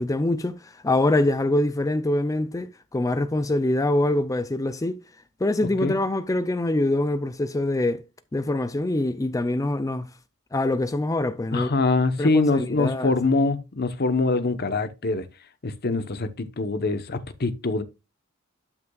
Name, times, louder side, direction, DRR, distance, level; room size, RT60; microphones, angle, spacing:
voice 1, 0.0-5.0 5.4-8.0 8.3-10.1 10.5-11.7 12.2-13.1, left 1 dB, 15° left, 0.4 m, -24 dB
voice 2, 11.5-15.3 15.6-17.8, left 3 dB, 50° left, 0.9 m, -24 dB
12.0 x 6.0 x 2.3 m
head